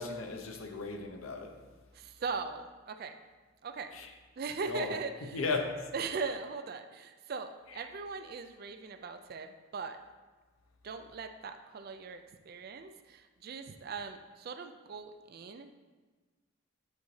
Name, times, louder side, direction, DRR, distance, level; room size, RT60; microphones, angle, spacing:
voice 1, 0.0-1.5 3.9-4.1 4.7-4.9 5.3-5.8, left 3 dB, 80° left, 0.7 m, -35 dB
voice 2, 1.9-3.2 3.6-3.9 4.4-5.4 5.9-10.0 10.8-15.8, right 4 dB, 45° right, 0.3 m, -40 dB
8.4 x 4.0 x 3.2 m
head